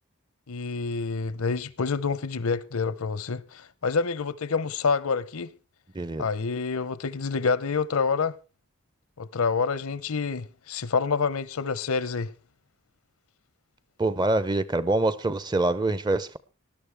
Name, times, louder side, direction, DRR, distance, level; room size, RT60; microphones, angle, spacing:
voice 1, 0.5-5.5 6.2-8.3 9.2-12.3, left 5 dB, 75° left, 0.7 m, -27 dB
voice 2, 5.9-6.3 14.0-16.4, right 2 dB, 20° right, 0.6 m, -25 dB
19.0 x 12.0 x 3.4 m
head